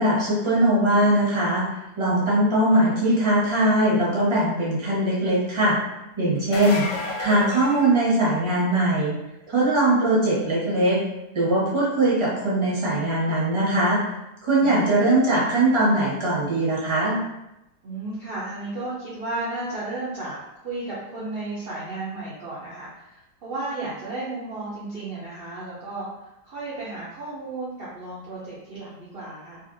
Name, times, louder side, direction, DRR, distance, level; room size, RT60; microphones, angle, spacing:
voice 1, 0.0-1.6 2.0-5.8 6.2-6.9 7.2-9.1 9.5-11.0 11.3-14.0 14.4-17.2, right 1 dB, 25° right, -7 dB, 0.7 m, -21 dB
sound 1, 6.4-8.6 14.1-14.2 16.0-16.1, left 3 dB, 65° left, 0.9 m, -32 dB
voice 2, 14.6-14.9 17.8-29.6, right 2 dB, 60° right, -8 dB, 0.6 m, -34 dB
2.8 x 2.5 x 2.5 m, 0.91 s
omnidirectional pair, 1.7 m